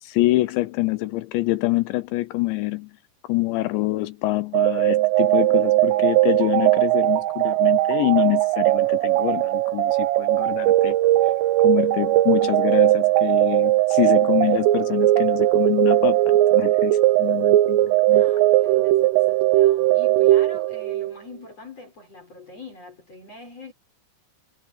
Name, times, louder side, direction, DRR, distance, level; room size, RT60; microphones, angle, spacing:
voice 1, 0.0-3.0 3.2-11.0 11.6-18.2, left 19 dB, 80° left, 2.7 m, -25 dB
sound 1, 4.5-21.1, right 16 dB, 85° right, 3.5 m, -19 dB
voice 2, 18.1-23.7, left 2 dB, 30° left, 6.8 m, -43 dB
omnidirectional pair, 5.7 m